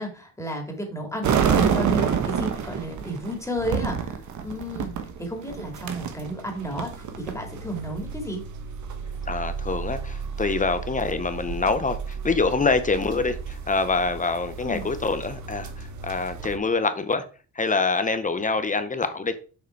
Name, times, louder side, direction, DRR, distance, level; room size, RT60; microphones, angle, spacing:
voice 1, 0.0-4.9 5.2-8.4 14.6-14.9, equal, 10° left, 2.7 m, -32 dB
sound 1, 1.2-16.6, right 7 dB, 70° right, 1.2 m, -30 dB
voice 2, 9.3-17.2 17.5-19.4, left 3 dB, 25° left, 0.9 m, -25 dB
6.9 x 5.0 x 4.6 m
cardioid pair, 90°, 30 cm